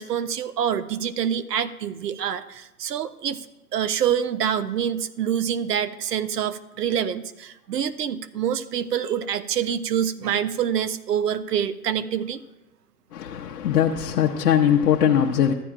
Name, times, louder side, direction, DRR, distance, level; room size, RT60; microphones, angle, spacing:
voice 1, 0.0-3.5 3.7-12.4, right 9 dB, 80° right, 13 dB, 0.7 m, -26 dB
voice 2, 13.1-15.5, left 9 dB, 70° left, 0 dB, 0.8 m, -20 dB
13.5 x 8.7 x 2.4 m, 0.96 s
hypercardioid pair, 130°, 46 cm